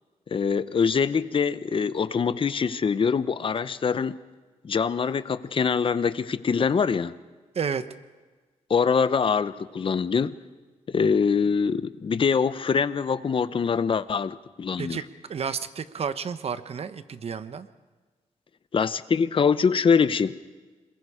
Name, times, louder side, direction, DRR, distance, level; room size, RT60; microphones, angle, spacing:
voice 1, 0.3-4.2 4.6-7.1 8.7-10.3 10.9-15.0 18.7-20.4, left 6 dB, 45° left, 14 dB, 0.8 m, -24 dB
voice 2, 15.3-17.7, right 6 dB, 55° right, 12 dB, 1.0 m, -31 dB
27.5 x 21.5 x 5.0 m, 1.3 s
wide cardioid pair, 105°, 12 cm